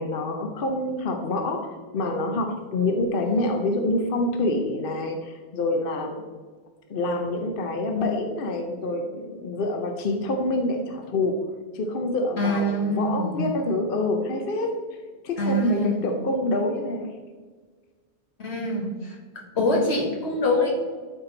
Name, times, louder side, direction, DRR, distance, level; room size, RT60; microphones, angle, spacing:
voice 1, 0.0-6.2 6.9-11.4 11.7-15.0 15.2-17.1, left 2 dB, 60° left, 4 dB, 0.9 m, -26 dB
voice 2, 12.4-13.5 15.4-16.1 18.4-20.7, left 1 dB, 90° left, 0 dB, 1.9 m, -25 dB
12.0 x 4.4 x 3.9 m, 1.5 s
omnidirectional pair, 1.1 m